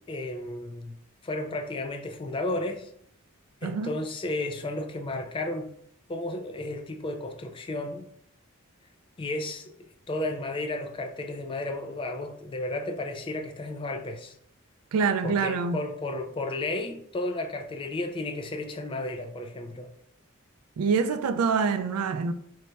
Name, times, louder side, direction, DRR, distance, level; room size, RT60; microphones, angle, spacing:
voice 1, 0.1-1.0 1.2-2.9 3.6-5.7 6.1-8.1 9.2-14.3 15.2-19.9, left 2 dB, 25° left, 0.3 m, -33 dB
voice 2, 14.9-15.8 20.8-22.3, right 5 dB, 80° right, 0.3 m, -25 dB
3.2 x 2.2 x 3.9 m
head